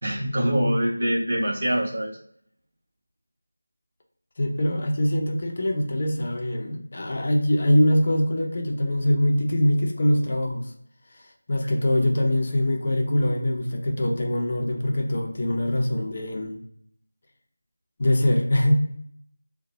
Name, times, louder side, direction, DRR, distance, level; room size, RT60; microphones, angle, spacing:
voice 1, 0.0-2.1 11.6-11.7, equal, 45° right, -2 dB, 0.8 m, -24 dB
voice 2, 4.4-10.7 11.1-16.6 18.0-18.8, left 1 dB, 40° left, 2 dB, 0.5 m, -23 dB
2.6 x 2.1 x 2.9 m, 0.69 s
figure-of-eight pair, 170°, 0 cm